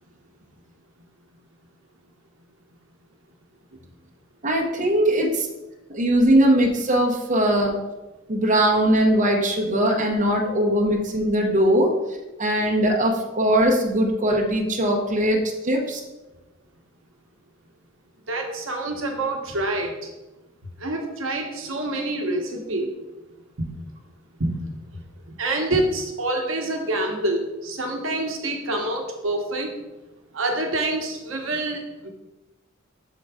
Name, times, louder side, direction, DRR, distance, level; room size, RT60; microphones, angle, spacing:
voice 1, 4.4-5.5 5.9-7.7 8.3-11.9 12.4-15.4 15.6-16.0, right 1 dB, 40° right, -1 dB, 1.0 m, -20 dB
voice 2, 18.3-20.1 20.8-22.9 23.6-23.7 24.4-24.5 25.4-29.7 30.3-32.1, right 2 dB, 75° right, 2 dB, 1.0 m, -26 dB
6.8 x 3.8 x 4.8 m, 1.1 s
head